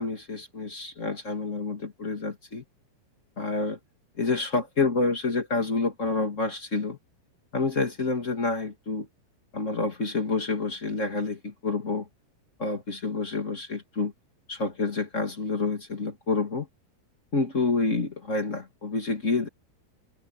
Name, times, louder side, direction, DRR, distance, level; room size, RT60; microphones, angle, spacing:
voice 1, 0.0-2.6 3.4-3.8 4.2-7.0 7.5-9.1 9.5-12.1 12.6-14.1 14.5-16.7 17.3-19.5, left 3 dB, 90° left, 0.6 m, -28 dB
omnidirectional pair, 6.0 m